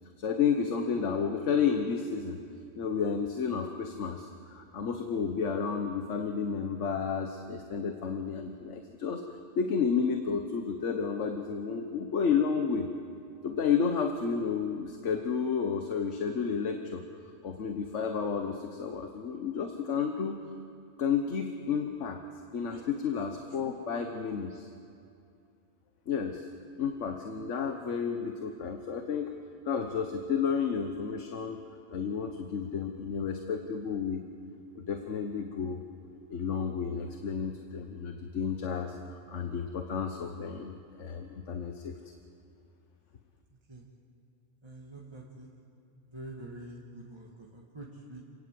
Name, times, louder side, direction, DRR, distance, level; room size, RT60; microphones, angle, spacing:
voice 1, 0.2-2.4 2.7-9.2 9.6-12.9 13.4-17.0 17.4-20.4 21.0-22.2 22.5-24.7 26.1-26.4 26.8-29.3 29.7-31.6 31.9-34.2 34.7-35.8 36.3-41.9, left 6 dB, 85° left, 5 dB, 1.4 m, -31 dB
voice 2, 44.6-45.5 46.1-48.2, right 1 dB, 20° right, -2 dB, 2.0 m, -45 dB
27.5 x 17.5 x 7.7 m, 2.5 s
omnidirectional pair, 1.2 m